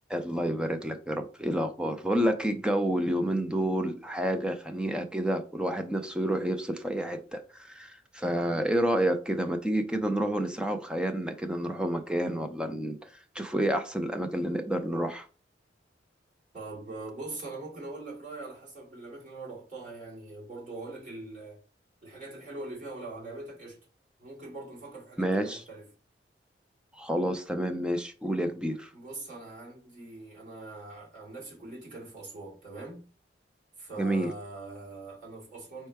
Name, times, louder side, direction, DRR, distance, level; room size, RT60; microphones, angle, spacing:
voice 1, 0.1-15.3 25.2-25.6 26.9-28.9 34.0-34.3, right 1 dB, 5° right, 0.4 m, -29 dB
voice 2, 16.5-21.6 22.0-23.8 24.2-25.9 28.9-33.1 33.8-35.9, right 2 dB, 45° right, 2.2 m, -42 dB
4.4 x 2.2 x 4.6 m
head